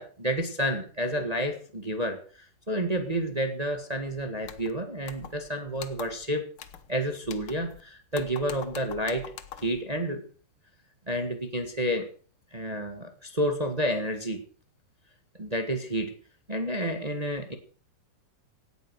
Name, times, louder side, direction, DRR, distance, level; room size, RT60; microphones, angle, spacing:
voice 1, 0.0-2.2 2.7-6.5 6.9-9.3 9.6-10.2 11.1-12.1 12.5-14.4 15.4-16.1 16.5-17.6, equal, 25° right, 6 dB, 0.9 m, -30 dB
sound 1, 4.4-4.7 5.1-5.5 5.8-6.3 6.6-6.9 7.2-7.8 8.1-9.8, left 9 dB, 60° left, 1.5 m, -44 dB
17.5 x 9.2 x 6.3 m, 0.43 s
omnidirectional pair, 3.7 m